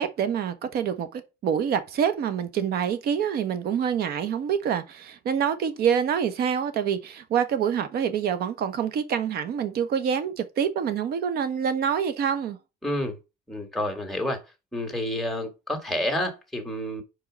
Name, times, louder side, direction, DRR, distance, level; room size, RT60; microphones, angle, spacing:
voice 1, 0.0-12.6, right 8 dB, 65° right, 1.1 m, -26 dB
voice 2, 12.8-13.1 13.5-14.4 14.7-17.0, left 1 dB, ahead, 2.1 m, -29 dB
5.0 x 4.8 x 6.3 m
cardioid pair, 110°, 17 cm